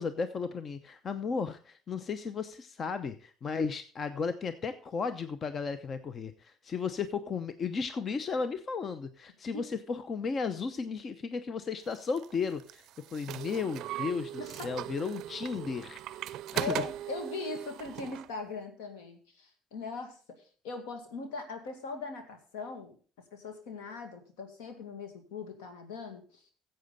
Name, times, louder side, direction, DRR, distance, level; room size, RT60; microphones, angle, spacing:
voice 1, 0.0-12.8 13.1-16.8, left 5 dB, 45° left, 12 dB, 0.7 m, -34 dB
sound 1, 11.9-18.3, right 13 dB, 65° right, 0.4 m, -39 dB
voice 2, 14.4-14.7 16.5-20.2 20.6-23.0 23.3-26.4, left 4 dB, 85° left, 6 dB, 2.2 m, -40 dB
14.0 x 7.9 x 4.0 m, 0.40 s
supercardioid pair, 70°, 0 cm